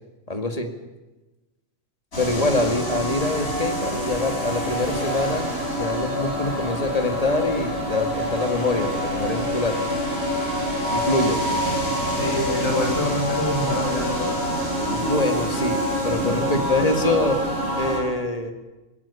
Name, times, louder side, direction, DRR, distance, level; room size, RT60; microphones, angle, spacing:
voice 1, 0.3-0.7 2.2-9.8 10.9-11.4 14.8-17.4 17.8-18.5, left 2 dB, 30° left, 5 dB, 2.1 m, -25 dB
sound 1, 2.1-18.0, equal, 55° left, 6.7 m, -26 dB
voice 2, 12.2-14.5, left 1 dB, 90° left, 0 dB, 6.3 m, -26 dB
18.5 x 15.5 x 9.9 m, 1.1 s
omnidirectional pair, 1.3 m